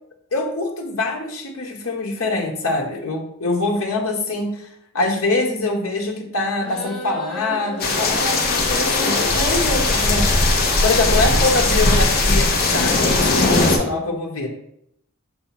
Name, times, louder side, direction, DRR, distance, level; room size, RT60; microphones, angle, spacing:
voice 1, 0.3-4.7 4.9-10.3 10.8-14.5, left 2 dB, 75° left, -1 dB, 1.0 m, -24 dB
sound 1, 6.6-9.6, left 1 dB, ahead, 1.0 m, -35 dB
sound 2, 7.8-13.8, left 2 dB, 45° left, 1.0 m, -18 dB
6.3 x 2.9 x 5.7 m, 0.73 s
head